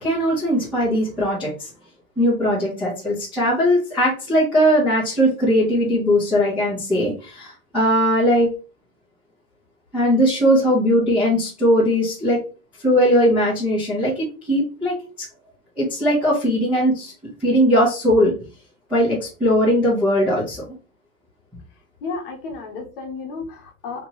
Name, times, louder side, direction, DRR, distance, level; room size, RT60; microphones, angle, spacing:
voice 1, 0.0-1.7 2.2-8.5 9.9-12.4 12.8-15.0 15.8-17.1 17.4-18.3 18.9-20.6, equal, 5° right, -12 dB, 0.5 m, -19 dB
voice 2, 22.0-24.1, left 4 dB, 40° left, 3 dB, 0.9 m, -33 dB
2.9 x 2.8 x 3.8 m, 0.34 s
supercardioid pair, 175°, 45 cm